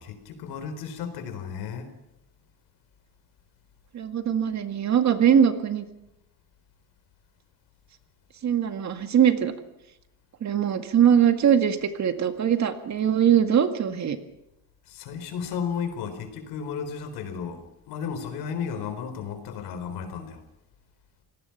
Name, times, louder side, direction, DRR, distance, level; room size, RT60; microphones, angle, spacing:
voice 1, 0.0-1.9 14.9-20.4, left 6 dB, 85° left, 9 dB, 4.1 m, -34 dB
voice 2, 3.9-5.8 8.4-9.5 10.4-14.2, right 8 dB, 50° right, 7 dB, 2.0 m, -21 dB
26.5 x 18.5 x 5.9 m, 0.89 s
cardioid pair, 135°, 37 cm